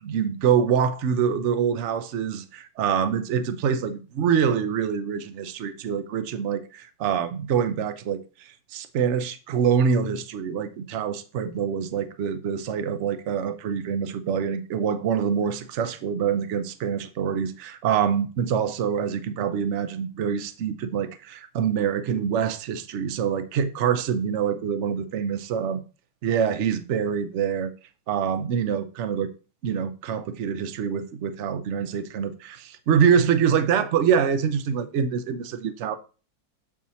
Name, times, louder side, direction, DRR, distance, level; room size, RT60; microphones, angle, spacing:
voice 1, 0.0-25.8 26.2-27.7 28.1-29.3 29.6-35.9, right 7 dB, 90° right, 0.6 m, -25 dB
7.3 x 4.9 x 4.0 m
omnidirectional pair, 2.1 m